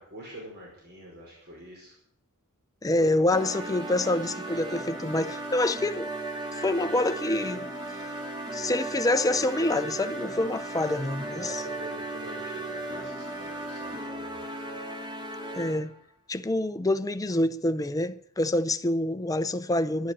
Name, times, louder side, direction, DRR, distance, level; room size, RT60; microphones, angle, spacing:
voice 1, 0.0-1.9 2.9-3.7 11.3-14.5, right 1 dB, 45° right, 5.1 m, -45 dB
voice 2, 2.8-6.1 6.5-7.7 8.5-11.6 15.6-15.9 16.3-20.1, left 1 dB, 15° left, 0.6 m, -26 dB
sound 1, 3.3-16.0, right 2 dB, 20° right, 2.3 m, -36 dB
11.5 x 11.0 x 8.7 m
head